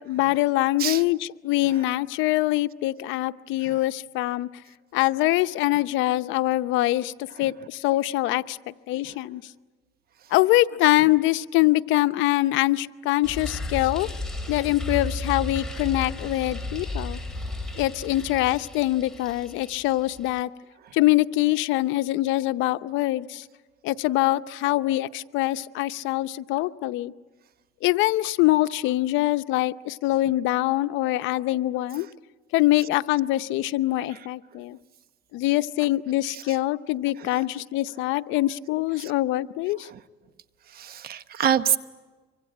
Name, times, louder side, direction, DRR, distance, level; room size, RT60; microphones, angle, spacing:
voice 1, 0.0-4.5 4.9-7.1 7.4-9.4 10.3-14.1 14.5-17.2 17.8-20.5 20.9-23.4 23.8-27.1 27.8-32.1 32.5-34.8 35.3-39.9, left 17 dB, 80° left, 13 dB, 0.7 m, -24 dB
sound 1, 13.2-20.4, left 2 dB, 5° left, 3.0 m, -34 dB
voice 2, 40.7-41.8, right 9 dB, 50° right, 13 dB, 1.1 m, -27 dB
25.0 x 24.5 x 8.9 m, 1.3 s
cardioid pair, 120°, 19 cm